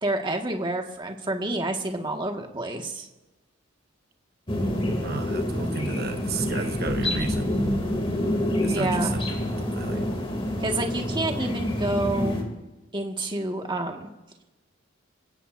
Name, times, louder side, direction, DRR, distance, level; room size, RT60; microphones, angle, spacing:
voice 1, 0.0-3.1 8.7-9.2 10.6-12.4 12.9-14.1, right 2 dB, 25° right, 2 dB, 1.9 m, -28 dB
sound 1, 4.5-12.4, left 1 dB, 25° left, 3.0 m, -27 dB
voice 2, 5.0-7.5 8.6-10.1, right 4 dB, 50° right, 6 dB, 1.1 m, -33 dB
28.0 x 17.0 x 2.7 m, 1.0 s
head